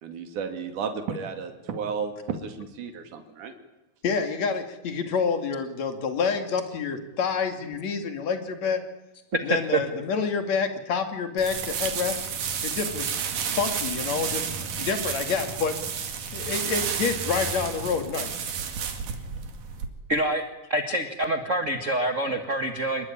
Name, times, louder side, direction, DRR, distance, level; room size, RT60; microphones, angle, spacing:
voice 1, 0.0-3.5, right 6 dB, 70° right, 6 dB, 3.9 m, -33 dB
voice 2, 4.0-8.8 9.4-12.2 12.6-13.1 13.6-14.5 14.7-15.7 16.3-18.3, left 5 dB, 60° left, 7 dB, 3.5 m, -28 dB
voice 3, 9.3-9.8 20.1-20.4 20.7-23.1, right 1 dB, 30° right, 6 dB, 1.6 m, -26 dB
sound 1, 11.4-19.9, right 7 dB, 90° right, 3.9 m, -31 dB
27.5 x 21.5 x 10.0 m, 1.0 s
omnidirectional pair, 3.7 m